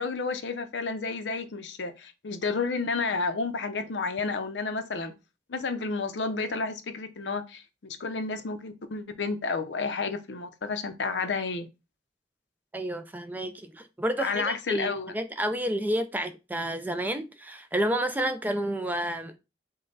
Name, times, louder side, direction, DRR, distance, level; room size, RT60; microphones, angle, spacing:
voice 1, 0.0-5.1 5.5-7.6 8.0-11.7 14.2-15.1, left 4 dB, 90° left, 0.6 m, -31 dB
voice 2, 12.7-19.4, right 1 dB, 10° right, 0.3 m, -30 dB
5.3 x 2.2 x 3.9 m
head